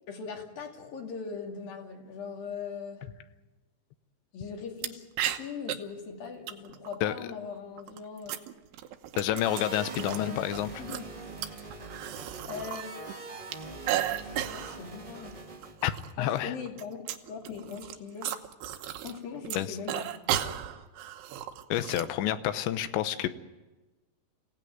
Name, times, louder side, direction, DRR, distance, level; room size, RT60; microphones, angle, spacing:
voice 1, 0.1-3.0 4.3-5.0 5.3-8.3 10.0-10.4 10.8-11.1 12.4-13.1 14.3-15.3 16.2-17.0 17.3-18.3 19.0-20.1, left 6 dB, 60° left, 2 dB, 4.1 m, -40 dB
sound 1, 4.8-4.9 5.2-5.8 6.5-7.0 7.8-10.2 10.5-12.8 13.1-14.8 15.2-15.3 15.6-16.1 16.4-19.2 19.4-22.1, right 11 dB, 75° right, 3.0 m, -34 dB
voice 2, 9.2-10.7 15.8-15.9 16.2-16.5 19.5-19.8 21.7-23.3, left 12 dB, 90° left, 12 dB, 3.2 m, -29 dB
sound 2, 9.3-15.9, right 3 dB, 40° right, 0.7 m, -43 dB
27.5 x 17.0 x 9.4 m, 1.2 s
omnidirectional pair, 5.0 m